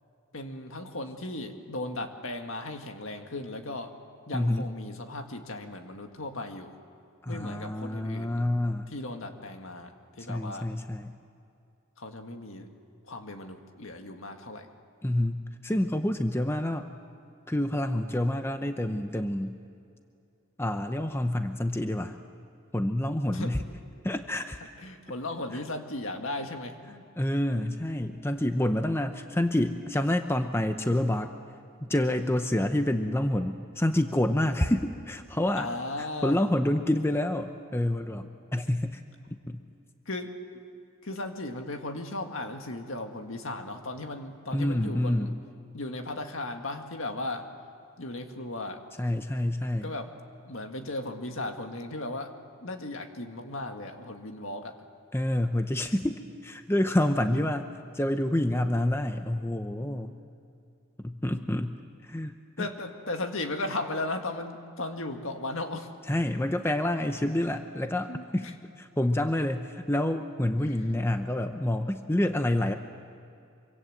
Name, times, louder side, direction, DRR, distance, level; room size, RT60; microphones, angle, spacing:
voice 1, 0.3-3.9 4.3-6.7 7.3-8.5 8.9-10.7 12.0-12.7 13.1-14.7 23.3-23.5 24.8-27.0 35.6-36.4 38.1-38.3 40.1-40.6 41.0-45.3 45.7-47.5 48.0-48.8 49.8-50.1 50.5-52.3 52.6-54.7 57.3-57.4 59.8-60.2 62.6-65.9 68.1-68.5, left 2 dB, 65° left, 5 dB, 1.9 m, -36 dB
voice 2, 4.3-4.7 7.2-8.9 10.3-11.2 15.0-16.9 17.5-19.6 20.6-22.2 22.7-23.6 24.0-24.6 25.5-25.6 27.2-31.3 31.8-35.7 36.0-39.0 39.5-39.6 44.5-45.4 49.0-49.9 55.1-57.7 57.9-60.1 61.0-62.7 66.1-68.5 68.8-72.7, left 1 dB, 10° left, 7 dB, 0.7 m, -28 dB
25.5 x 24.5 x 7.9 m, 2.5 s
head